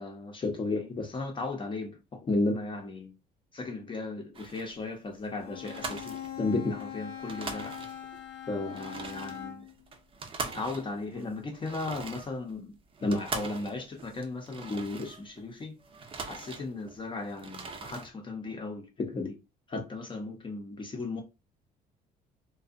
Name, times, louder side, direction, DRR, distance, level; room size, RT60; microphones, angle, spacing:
voice 1, 0.0-3.1 3.5-7.8 8.5-9.7 10.4-15.7 16.3-19.4 19.7-21.2, left 2 dB, 30° left, 0.7 m, -34 dB
sound 1, 4.3-4.8 5.2-5.3 5.6-6.9 7.1-8.2 8.6-15.4 15.8-17.0 17.3-18.1, right 4 dB, 30° right, 0.5 m, -41 dB
Bowed string instrument, 5.4-9.8, left 10 dB, 80° left, 0.6 m, -41 dB
2.5 x 2.3 x 2.5 m
cardioid pair, 110°, 17 cm